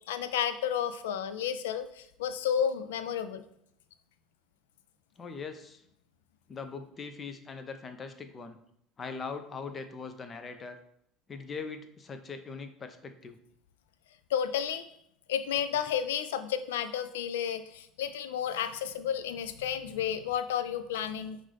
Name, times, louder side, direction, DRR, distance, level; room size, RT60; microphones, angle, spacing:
voice 1, 0.1-3.4 14.3-14.9 15.3-21.4, left 9 dB, 80° left, 11 dB, 0.3 m, -32 dB
voice 2, 5.2-5.8 6.5-8.6 9.0-10.8 11.3-13.4, left 5 dB, 35° left, 8 dB, 0.6 m, -41 dB
5.3 x 2.6 x 3.3 m, 0.72 s
hypercardioid pair, 75°, 0 cm